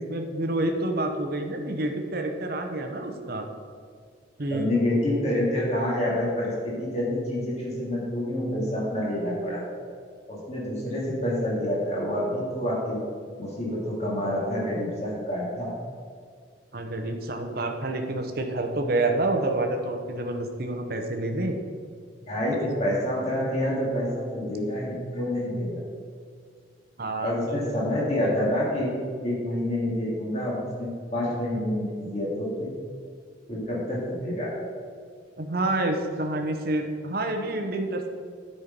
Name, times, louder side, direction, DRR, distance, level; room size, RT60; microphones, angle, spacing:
voice 1, 0.0-3.5 4.4-4.7 16.7-21.6 27.0-27.6 35.4-38.1, right 2 dB, 50° right, 4 dB, 0.8 m, -28 dB
voice 2, 4.5-9.6 10.3-13.0 13.4-15.7 22.3-25.8 27.2-28.9 29.2-32.7 33.5-34.5, left 1 dB, 35° left, -5 dB, 2.2 m, -27 dB
9.7 x 4.4 x 5.1 m, 2.1 s
head